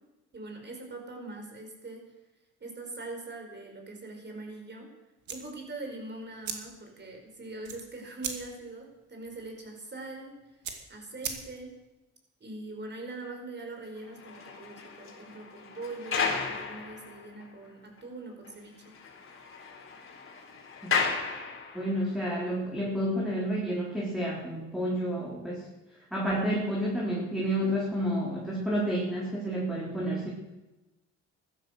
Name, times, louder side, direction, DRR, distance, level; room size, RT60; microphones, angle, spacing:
voice 1, 0.3-2.1 2.6-4.9 5.3-10.4 10.9-11.7 12.4-19.0, right 2 dB, 35° right, 3 dB, 5.1 m, -42 dB
sound 1, 5.2-11.9, right 7 dB, 75° right, 2.5 m, -42 dB
sound 2, 14.0-17.5 18.0-18.1 18.4-18.5 18.8-22.1, left 5 dB, 45° left, 3.8 m, -34 dB
voice 2, 21.7-25.7 26.1-30.3, equal, ahead, -5 dB, 4.2 m, -30 dB
15.5 x 12.5 x 6.6 m, 1.0 s
cardioid pair, 90°, 30 cm